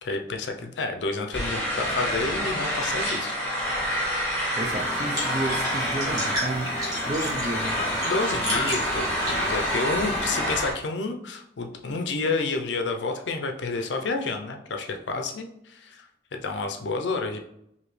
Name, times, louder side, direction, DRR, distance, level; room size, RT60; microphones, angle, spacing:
voice 1, 0.0-3.4 8.1-17.4, left 3 dB, 80° left, 4 dB, 0.5 m, -30 dB
sound 1, 1.3-10.7, equal, 10° left, 1.0 m, -27 dB
sound 2, 4.6-10.4, equal, 20° right, 1.5 m, -34 dB
voice 2, 4.6-6.7 7.1-8.1, right 2 dB, 40° right, 5 dB, 0.4 m, -31 dB
4.9 x 2.7 x 3.1 m, 0.77 s
head